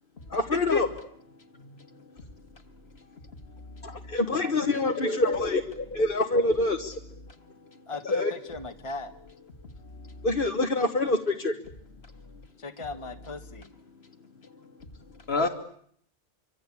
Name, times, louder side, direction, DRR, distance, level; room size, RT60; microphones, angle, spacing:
voice 1, 0.3-0.9 3.8-7.0 8.1-8.3 10.2-11.5 15.4-15.5, left 2 dB, 55° left, 1.8 m, -26 dB
voice 2, 1.5-2.0 3.0-3.1 3.5-4.2 7.2-7.8 9.8-10.3 12.2-12.4 13.9-14.1 14.4-14.9 15.1-15.5, left 3 dB, 75° left, 2.4 m, -34 dB
voice 3, 7.9-9.1 12.6-13.7, left 3 dB, 30° left, 1.6 m, -38 dB
26.5 x 25.0 x 8.5 m
omnidirectional pair, 1.1 m